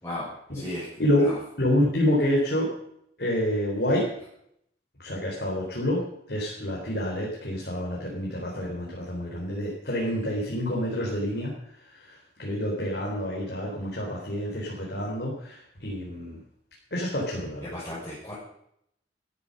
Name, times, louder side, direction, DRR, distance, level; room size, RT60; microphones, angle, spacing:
voice 1, 0.0-0.8 1.2-1.4 17.6-18.3, left 1 dB, 15° left, -10 dB, 6.3 m, -35 dB
voice 2, 1.0-1.3 1.6-2.7 3.2-4.1 5.0-11.5 11.8-16.4 16.9-17.8, left 1 dB, 60° left, -3 dB, 4.3 m, -28 dB
13.5 x 13.5 x 5.4 m, 0.73 s
head